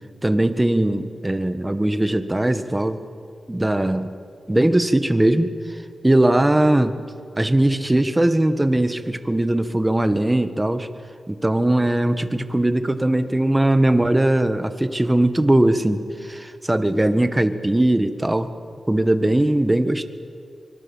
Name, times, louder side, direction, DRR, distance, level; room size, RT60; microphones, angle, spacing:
voice 1, 0.2-3.0 3.5-4.1 4.5-5.5 6.0-7.0 7.4-10.9 11.3-18.5 18.9-20.1, right 1 dB, 15° right, 10 dB, 1.5 m, -20 dB
24.5 x 23.0 x 7.3 m, 2.3 s
cardioid pair, 60°, 0 cm